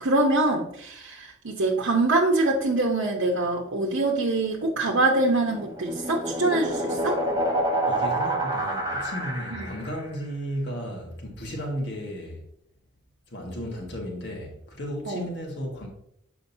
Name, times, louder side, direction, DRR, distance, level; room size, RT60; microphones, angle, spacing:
voice 1, 0.0-7.2 9.5-9.7 15.1-15.3, right 2 dB, 90° right, 0.8 m, -24 dB
sound 1, 5.2-10.0, right 1 dB, 20° right, 0.9 m, -28 dB
voice 2, 7.8-12.4 13.3-15.9, equal, 60° left, 1.5 m, -34 dB
6.8 x 5.1 x 2.7 m
head